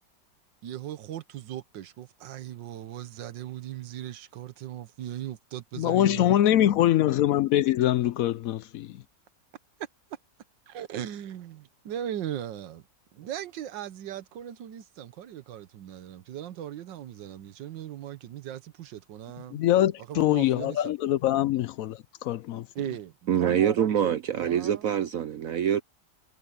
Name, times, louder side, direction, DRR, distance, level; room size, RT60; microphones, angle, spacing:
voice 1, 0.6-6.3 10.7-12.8 13.1-19.6 20.1-20.9 21.3-21.5 22.7-24.9, right 11 dB, 85° right, 1.6 m, -38 dB
voice 2, 5.8-9.0 19.5-22.7, left 12 dB, 75° left, 0.8 m, -24 dB
voice 3, 23.3-25.8, right 9 dB, 60° right, 0.9 m, -25 dB
omnidirectional pair, 1.9 m